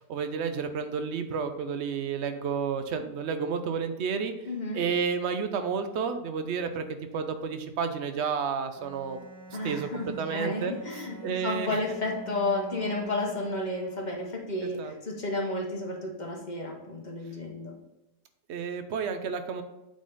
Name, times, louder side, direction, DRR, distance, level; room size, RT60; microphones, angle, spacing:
voice 1, 0.0-4.3 4.7-6.8 7.1-9.2 9.5-10.7 11.2-11.8 14.6-14.9 18.5-19.6, right 6 dB, 60° right, 8 dB, 0.8 m, -31 dB
voice 2, 4.5-4.9 9.5-17.7, left 2 dB, 35° left, 0 dB, 1.0 m, -32 dB
Bowed string instrument, 8.7-14.5, equal, 15° right, 0.7 m, -46 dB
8.3 x 3.9 x 3.9 m, 0.97 s
omnidirectional pair, 1.6 m